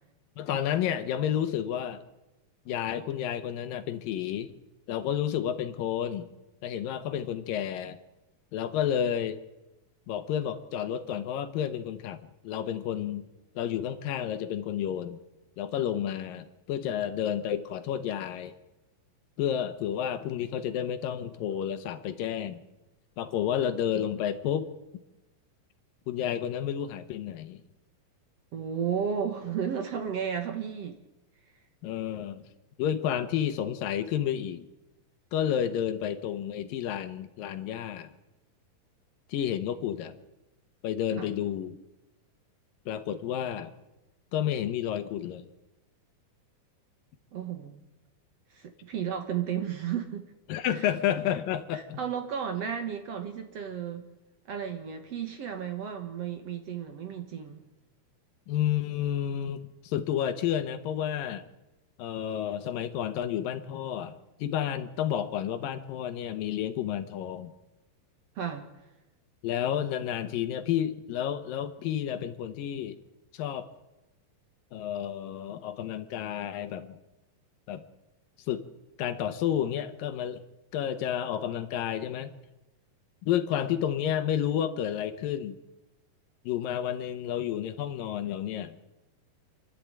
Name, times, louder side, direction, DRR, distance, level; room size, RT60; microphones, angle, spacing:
voice 1, 0.4-2.0 2.7-4.5 4.9-6.3 6.6-8.0 8.5-9.4 10.1-12.2 12.4-13.3 13.6-15.2 15.6-18.5 19.4-22.6 23.2-24.7 26.1-27.6 31.8-32.4 32.8-34.7 35.3-38.1 39.3-40.2 40.8-41.8 42.9-43.7 44.3-45.5 50.5-52.0 58.5-61.5 62.0-67.5 69.4-73.0 73.3-73.7 74.7-77.0 77.7-77.8 78.5-78.7 79.0-80.4 80.7-82.3 83.2-85.6 86.4-88.8, left 10 dB, 75° left, 10 dB, 2.8 m, -31 dB
voice 2, 28.5-31.0 41.2-41.3 47.3-47.8 48.5-50.3 50.7-50.9 51.7-54.1 54.5-57.6 68.4-68.7, right 8 dB, 55° right, 6 dB, 2.1 m, -33 dB
27.5 x 12.0 x 8.9 m, 1.0 s
omnidirectional pair, 4.1 m